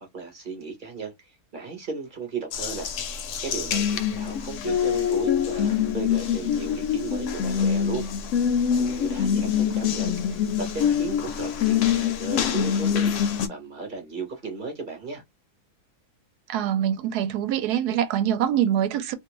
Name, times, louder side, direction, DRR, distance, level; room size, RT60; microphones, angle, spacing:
voice 1, 0.1-1.1 1.5-3.1 3.4-8.0 8.7-13.1 13.5-15.2, right 4 dB, 40° right, 0.8 m, -35 dB
Water tap faucet, 2.5-13.5, left 8 dB, 70° left, 0.7 m, -25 dB
voice 2, 16.5-19.1, right 10 dB, 80° right, 1.1 m, -24 dB
2.6 x 2.3 x 2.9 m
omnidirectional pair, 1.7 m